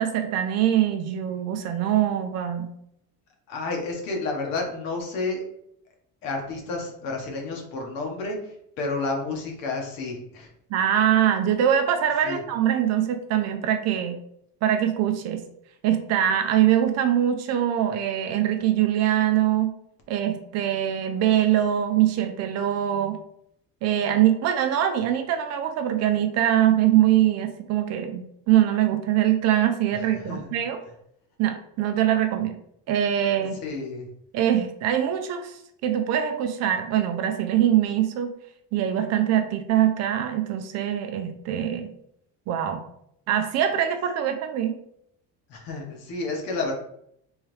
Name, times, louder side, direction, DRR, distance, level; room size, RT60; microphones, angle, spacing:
voice 1, 0.0-2.7 10.7-14.2 14.6-15.4 15.8-19.7 20.1-23.2 23.8-30.8 31.4-32.6 32.9-33.6 34.3-35.5 35.8-38.3 38.7-41.9 42.5-42.8 43.3-44.7, right 11 dB, 45° right, 6 dB, 0.4 m, -23 dB
voice 2, 3.5-5.4 6.2-10.5 12.2-12.4 29.9-30.5 33.5-34.1 45.5-46.7, left 3 dB, 70° left, 1 dB, 1.1 m, -31 dB
3.6 x 3.2 x 3.1 m, 0.72 s
cardioid pair, 180°, 36 cm